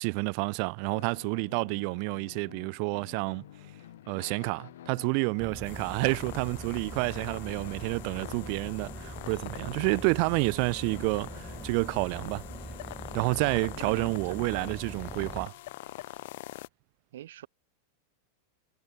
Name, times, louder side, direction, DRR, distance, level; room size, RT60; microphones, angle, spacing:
voice 1, 0.0-3.4 4.1-12.4 13.1-15.5, right 40 dB or more, 45° right, 0.5 m, -29 dB
sound 1, 0.9-14.1, left 12 dB, 80° left, 1.3 m, -50 dB
sound 2, 5.4-15.5, right 2 dB, 5° right, 1.0 m, -43 dB
sound 3, 5.6-16.7, left 18 dB, 60° left, 1.0 m, -45 dB
voice 2, 13.8-14.5 17.1-17.5, right 12 dB, 80° right, 2.7 m, -45 dB
supercardioid pair, 160°, 0 cm